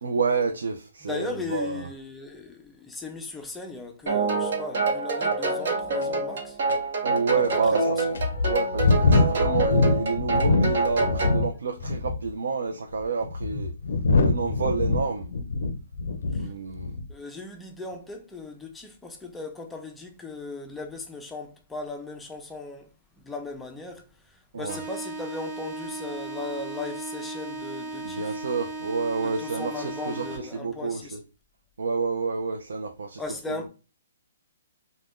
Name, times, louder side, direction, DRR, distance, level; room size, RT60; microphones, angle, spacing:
voice 1, 0.0-1.9 7.0-8.0 8.4-13.7 14.2-15.3 16.4-17.0 24.5-24.8 28.0-31.0 31.8-33.2 33.5-33.6, right 5 dB, 80° right, 0.4 m, -29 dB
voice 2, 1.0-6.6 7.3-8.2 16.3-28.4 29.2-31.2 33.2-33.7, left 3 dB, 5° left, 0.4 m, -38 dB
sound 1, 4.1-11.4, right 3 dB, 60° right, 0.9 m, -27 dB
sound 2, 6.0-6.1 6.7-6.8 7.4-7.5 8.1-11.5 11.8-12.3 13.0-16.5 16.8-17.1, left 3 dB, 75° left, 0.4 m, -23 dB
sound 3, 24.7-30.7, right 3 dB, 30° right, 0.8 m, -36 dB
2.4 x 2.1 x 3.4 m
hypercardioid pair, 155°, 0 cm